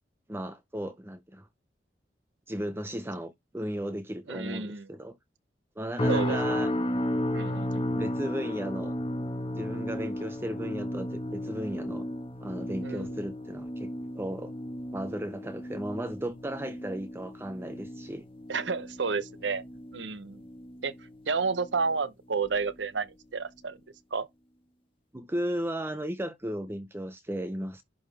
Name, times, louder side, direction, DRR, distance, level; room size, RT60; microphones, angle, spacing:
voice 1, 0.3-1.5 2.5-5.2 5.8-6.7 7.9-8.9 9.6-12.1 12.4-14.5 14.9-18.3 25.1-27.8, equal, 15° right, 0.6 m, -35 dB
voice 2, 4.3-4.9 6.1-6.4 7.3-7.9 12.8-13.2 18.5-19.6 19.9-20.4 20.8-20.9 21.3-23.8 24.1-24.3, right 4 dB, 80° right, 0.9 m, -31 dB
sound 1, 6.0-21.2 21.5-21.9 22.4-22.6, left 1 dB, 30° left, 1.5 m, -34 dB
11.0 x 3.8 x 3.4 m
head